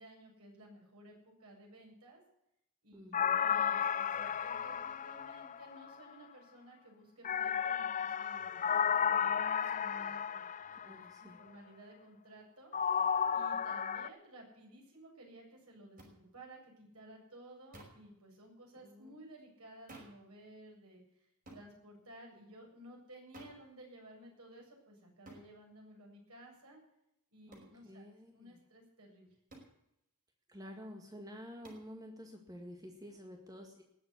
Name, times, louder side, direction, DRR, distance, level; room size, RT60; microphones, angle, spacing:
voice 1, 0.0-2.2 2.8-3.2 3.4-10.4 10.7-12.7 13.3-21.3 21.5-26.8 27.3-28.1 28.3-29.3, right 1 dB, 90° right, 0 dB, 7.6 m, -55 dB
voice 2, 2.9-3.4 10.8-11.4 18.8-19.1 27.5-28.6 30.5-33.8, equal, 15° right, 2 dB, 1.9 m, -50 dB
sound 1, 3.1-6.0 7.2-11.1 12.7-14.1, left 7 dB, 35° left, 0.5 m, -33 dB
sound 2, 16.0-16.1 17.7-18.1 19.9-20.2 21.5-21.7 23.3-23.6 25.3-25.5 27.5-27.7 29.5-29.8 31.6-31.9, right 1 dB, 40° right, 5.4 m, -53 dB
19.5 x 7.7 x 8.3 m, 0.81 s
head